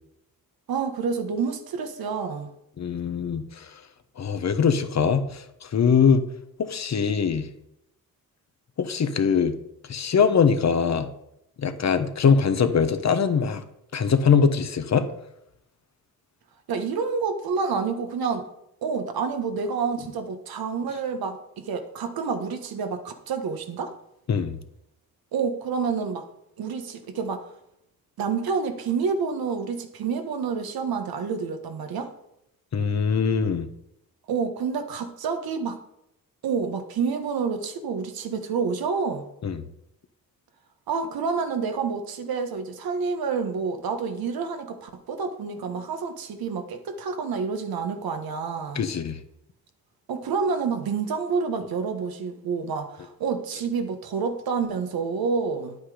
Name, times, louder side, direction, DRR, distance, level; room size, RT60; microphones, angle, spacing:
voice 1, 0.7-2.5 16.7-18.5 18.8-23.9 25.3-26.3 26.6-27.4 28.2-32.1 34.3-35.8 36.4-39.3 40.9-48.9 50.1-55.8, right 5 dB, 75° right, 6 dB, 1.5 m, -28 dB
voice 2, 2.8-3.7 4.2-6.2 6.6-7.5 8.8-9.5 9.9-11.1 11.6-13.6 13.9-15.1 24.3-24.6 32.7-33.7 39.4-39.6 48.7-49.2, left 6 dB, 45° left, 9 dB, 1.2 m, -22 dB
9.9 x 8.6 x 5.0 m, 0.80 s
cardioid pair, 85°, 36 cm